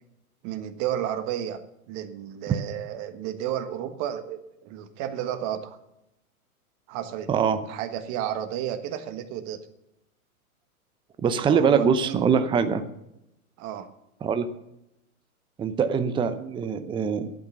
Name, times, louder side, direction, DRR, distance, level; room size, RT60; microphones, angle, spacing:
voice 1, 0.4-1.6 1.9-5.8 6.9-7.3 7.7-9.6 11.5-12.3 13.6-13.9, right 10 dB, 40° right, 8 dB, 1.6 m, -32 dB
voice 2, 7.3-7.6 11.2-12.8 14.2-14.5 15.6-17.3, right 6 dB, 10° right, 10 dB, 0.6 m, -23 dB
12.0 x 9.0 x 6.9 m, 0.84 s
hypercardioid pair, 115°, 43 cm